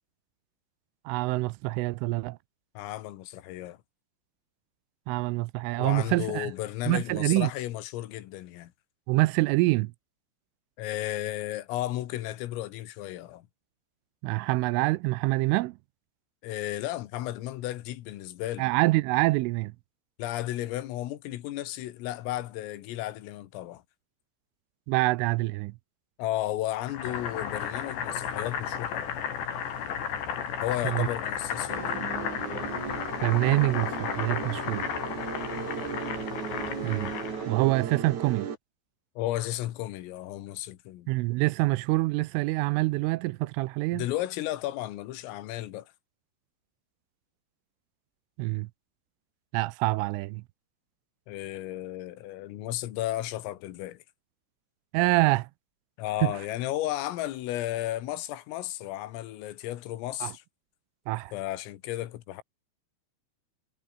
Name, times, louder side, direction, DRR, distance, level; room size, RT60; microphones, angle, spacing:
voice 1, 1.1-2.4 5.1-6.5 6.9-7.5 9.1-9.9 14.2-15.8 18.6-19.7 24.9-25.8 30.8-31.1 33.2-34.8 36.8-37.1 37.5-38.5 41.1-44.1 48.4-48.7 49.5-50.4 54.9-55.5 56.2-56.3 60.2-60.3 61.1-61.3, right 21 dB, 85° right, 3.1 m, -26 dB
voice 2, 2.8-3.8 5.8-8.7 10.8-13.5 16.4-18.7 20.2-23.8 26.2-29.1 30.6-32.0 39.2-41.1 43.9-45.9 51.3-54.0 56.0-60.4 61.3-62.4, left 14 dB, 90° left, 4.3 m, -34 dB
Boiling, 26.9-37.5, left 8 dB, 60° left, 5.5 m, -33 dB
sound 1, 31.7-38.6, right 7 dB, 45° right, 3.5 m, -36 dB
omnidirectional pair, 5.8 m